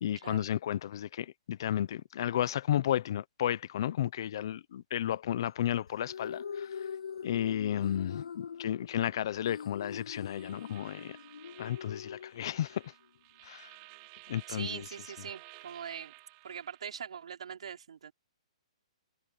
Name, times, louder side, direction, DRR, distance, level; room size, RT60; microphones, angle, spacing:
voice 1, 0.0-6.8 7.2-11.1 11.6-12.9 13.4-13.7 14.3-14.8, left 11 dB, 40° left, 0.7 m, -33 dB
sound 1, 5.9-12.9, left 7 dB, 90° left, 0.5 m, -43 dB
sound 2, 10.1-16.9, right 26 dB, 25° right, 4.8 m, -54 dB
voice 2, 14.5-16.1 16.4-18.1, right 7 dB, 65° right, 5.4 m, -42 dB
hypercardioid pair, 175°, 4 cm